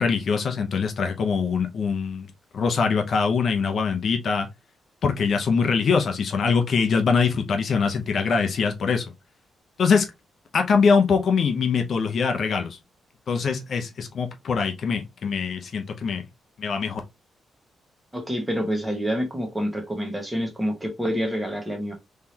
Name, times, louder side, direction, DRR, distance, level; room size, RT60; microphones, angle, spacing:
voice 1, 0.0-2.3 2.5-4.5 5.0-9.0 9.8-10.1 10.5-12.8 13.3-16.2 16.6-17.0, left 5 dB, 50° left, 0.7 m, -23 dB
voice 2, 18.1-21.9, equal, 10° right, 1.3 m, -27 dB
3.7 x 3.2 x 2.8 m
cardioid pair, 140°, 0 cm